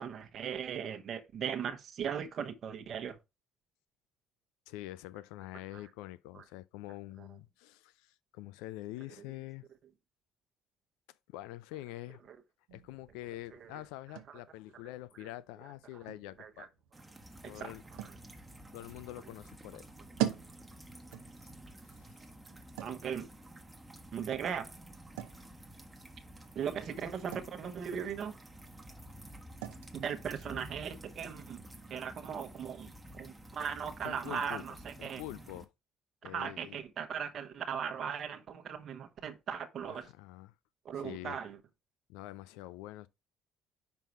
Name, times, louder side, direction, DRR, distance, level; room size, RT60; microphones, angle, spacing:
voice 1, 0.0-3.2 6.3-6.4 7.2-7.3 12.3-12.4 13.5-13.8 14.3-14.4 15.2-15.3 16.4-16.7 17.4-17.7 18.0-18.1 22.8-23.3 24.1-24.7 26.5-28.3 29.9-31.6 31.9-35.2 36.2-40.1 40.8-41.6, right 7 dB, 55° right, 0.9 m, -38 dB
voice 2, 4.7-9.6 11.3-12.2 12.7-16.7 17.5-17.8 18.7-19.9 21.9-22.6 34.0-34.6 35.0-35.7 36.2-36.8 39.9-40.5 41.0-41.4 42.1-43.1, left 16 dB, 85° left, 0.4 m, -46 dB
sound 1, 12.7-32.2, right 13 dB, 85° right, 0.7 m, -46 dB
sound 2, 16.9-35.7, right 1 dB, 15° right, 1.1 m, -51 dB
5.3 x 4.6 x 4.6 m
supercardioid pair, 70°, 0 cm